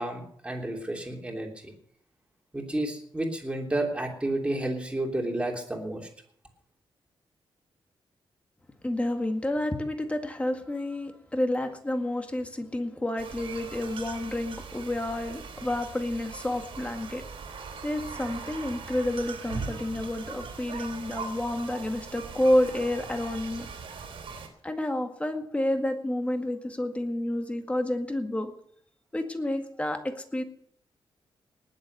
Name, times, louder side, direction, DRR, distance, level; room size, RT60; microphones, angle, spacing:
voice 1, 0.0-1.7 2.5-6.1, right 1 dB, 10° right, 1 dB, 3.1 m, -31 dB
voice 2, 8.8-17.2 17.8-23.7 24.6-28.5 29.1-30.4, left 1 dB, 15° left, 5 dB, 1.9 m, -29 dB
sound 1, 13.2-24.5, right 5 dB, 75° right, 3.1 m, -40 dB
19.5 x 7.5 x 6.8 m, 0.63 s
wide cardioid pair, 130°, 9 cm